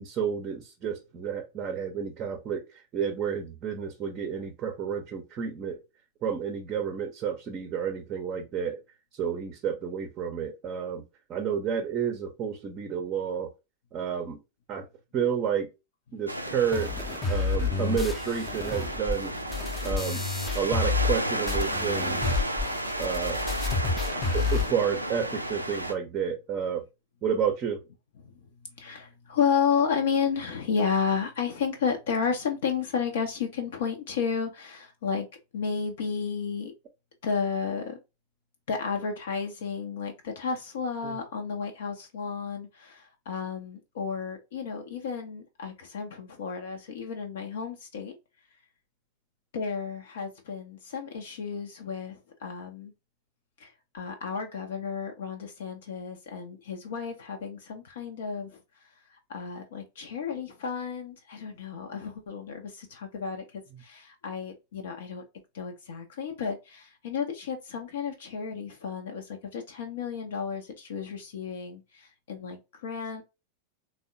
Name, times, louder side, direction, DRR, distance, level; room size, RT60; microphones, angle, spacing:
voice 1, 0.0-5.8 6.2-8.8 9.1-11.0 11.3-13.5 13.9-14.4 14.7-14.8 15.1-15.7 16.1-16.9 17.3-19.3 19.8-20.2 20.5-22.4 23.0-23.4 24.3-26.8 27.2-27.8 41.0-41.2, right 7 dB, 30° right, 0.5 m, -30 dB
voice 2, 16.3-16.6 17.2-17.8 19.2-20.1 24.0-24.7 28.2-28.5 28.8-35.3 35.5-36.7 37.2-38.0 38.7-48.2 49.5-52.9 53.6-58.6 59.3-65.2 65.5-73.2, left 6 dB, 60° left, 0.5 m, -32 dB
sound 1, 16.3-25.9, right 1 dB, 85° right, 0.3 m, -33 dB
sound 2, 16.7-21.2 21.5-24.7, left 4 dB, 15° left, 0.5 m, -29 dB
3.4 x 2.1 x 2.5 m
figure-of-eight pair, 90°, 0 cm